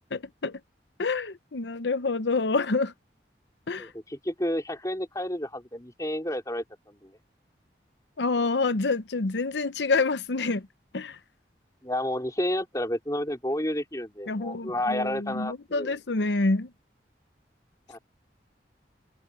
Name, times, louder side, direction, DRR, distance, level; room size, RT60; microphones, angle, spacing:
voice 1, 0.1-0.6 1.0-2.9 3.7-3.9 8.2-10.7 10.9-11.2 14.3-16.7, left 3 dB, 80° left, 0.8 m, -27 dB
voice 2, 3.8-7.2 11.8-15.9 17.9-18.0, left 1 dB, 20° left, 3.7 m, -31 dB
head